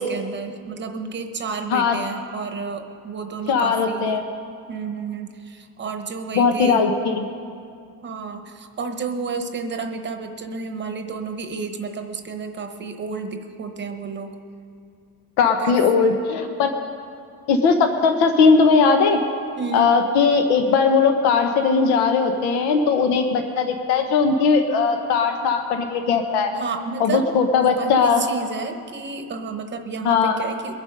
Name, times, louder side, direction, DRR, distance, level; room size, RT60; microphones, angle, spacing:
voice 1, 0.0-4.2 4.7-6.9 8.0-14.3 15.6-16.2 19.6-19.9 26.5-27.3 27.6-30.7, right 4 dB, 30° right, 6 dB, 0.9 m, -31 dB
voice 2, 3.5-4.2 6.3-7.3 15.4-16.7 17.5-19.2 19.7-26.5 27.0-28.2 30.0-30.4, left 5 dB, 90° left, 6 dB, 1.2 m, -19 dB
23.0 x 8.0 x 5.3 m, 2.4 s
cardioid pair, 155°, 39 cm